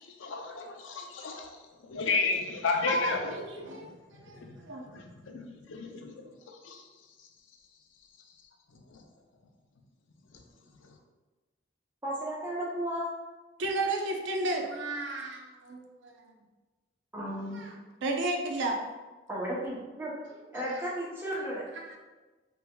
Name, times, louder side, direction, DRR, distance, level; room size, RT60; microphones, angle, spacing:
voice 1, 0.2-1.5 1.9-3.9 4.4-4.6 4.9-6.1 6.5-6.8, left 4 dB, 85° left, 2 dB, 0.5 m, -32 dB
voice 2, 2.9-4.9 13.6-16.1 17.5-17.7 18.0-18.8 20.5-20.8 21.7-22.0, right 2 dB, 70° right, 2 dB, 0.5 m, -33 dB
voice 3, 12.0-13.1 17.1-17.7 19.3-20.1 20.5-21.6, equal, 10° right, -6 dB, 0.7 m, -34 dB
3.4 x 3.3 x 2.2 m, 1.2 s
head